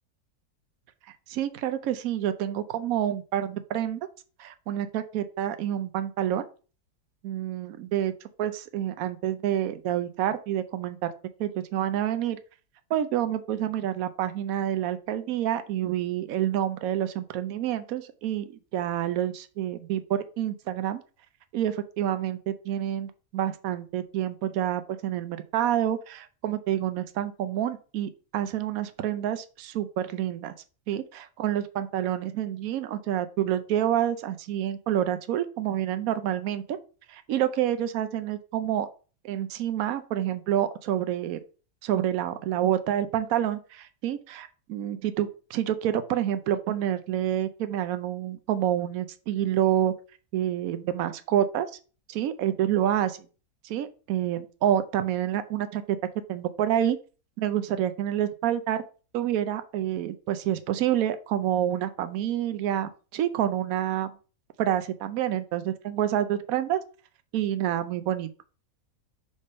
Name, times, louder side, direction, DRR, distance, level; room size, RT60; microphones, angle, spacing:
voice 1, 1.3-4.1 4.4-6.4 7.2-8.1 8.4-11.1 11.4-12.4 12.9-21.0 21.5-30.5 30.9-36.8 37.1-38.9 39.2-41.4 41.8-49.9 50.3-51.7 52.1-53.2 53.6-56.0 56.3-57.0 57.4-58.8 59.1-64.1 64.6-66.8 67.3-68.3, right 11 dB, 70° right, 11 dB, 1.0 m, -28 dB
5.1 x 3.4 x 5.4 m, 0.36 s
omnidirectional pair, 1.7 m